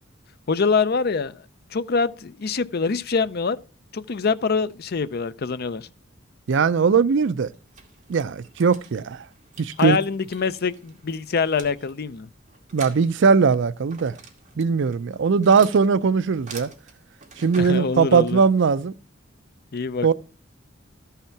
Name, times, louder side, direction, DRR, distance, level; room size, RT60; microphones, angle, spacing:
voice 1, 0.5-1.4 1.7-3.6 3.9-5.9 9.8-12.3 17.6-18.4 19.7-20.1, left 5 dB, 55° left, 0.6 m, -24 dB
voice 2, 6.5-7.5 8.1-9.2 9.6-10.0 12.7-14.1 14.6-16.7 17.4-18.9 20.0-20.1, right 5 dB, 65° right, 0.5 m, -19 dB
sound 1, 7.4-18.5, right 4 dB, 40° right, 2.2 m, -46 dB
13.5 x 5.7 x 5.8 m
head